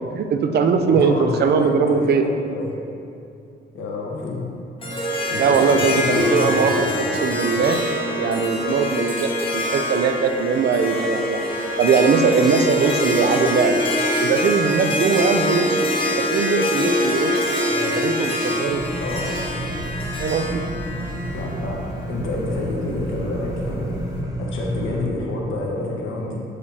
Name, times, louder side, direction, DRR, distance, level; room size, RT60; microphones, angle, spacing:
voice 1, 0.2-2.3 5.4-6.9 7.2-7.8 8.2-11.5 11.8-13.8 14.2-15.9 16.2-17.4 18.0-18.8 20.2-20.6, right 5 dB, 55° right, 6 dB, 0.5 m, -20 dB
voice 2, 0.8-2.7 3.7-4.5 5.3-7.2 17.7-18.0 19.0-19.3 21.3-24.0 24.4-26.4, left 2 dB, 80° left, -2 dB, 1.2 m, -28 dB
Harp, 4.8-22.1, left 1 dB, 25° left, 1.0 m, -24 dB
sound 1, 18.7-25.0, equal, 20° right, 0.7 m, -30 dB
8.6 x 4.9 x 2.8 m, 2.5 s
cardioid pair, 90°, 20 cm